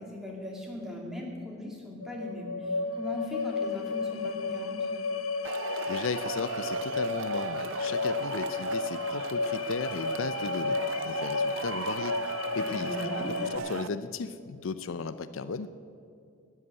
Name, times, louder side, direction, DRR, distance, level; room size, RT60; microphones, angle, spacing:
voice 1, 0.0-4.9 12.6-13.3, left 1 dB, ahead, -1 dB, 2.3 m, -39 dB
sound 1, 2.0-13.6, left 4 dB, 85° left, 0.9 m, -33 dB
Male speech man speaking / Shout / Clapping, 5.4-13.9, right 6 dB, 65° right, 0.5 m, -36 dB
voice 2, 5.9-10.8 11.0-15.7, left 4 dB, 65° left, 12 dB, 0.5 m, -36 dB
12.5 x 8.3 x 9.5 m, 2.4 s
head